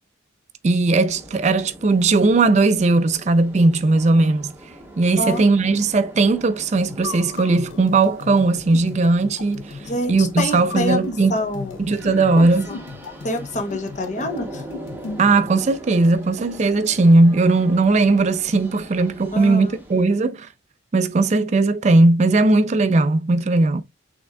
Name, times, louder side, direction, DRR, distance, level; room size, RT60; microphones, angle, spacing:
voice 1, 0.6-4.5 5.0-9.7 10.1-11.4 11.8-12.7 15.2-20.5 20.9-23.8, right 3 dB, 35° right, 0.4 m, -18 dB
sound 1, 1.0-20.0, right 1 dB, 10° right, 0.8 m, -41 dB
sound 2, 6.9-15.4, left 5 dB, 70° left, 0.3 m, -36 dB
voice 2, 9.8-11.0 11.3-11.8 12.4-12.8 13.2-14.6 19.3-19.8, left 1 dB, 35° left, 0.8 m, -26 dB
5.9 x 3.5 x 2.2 m
head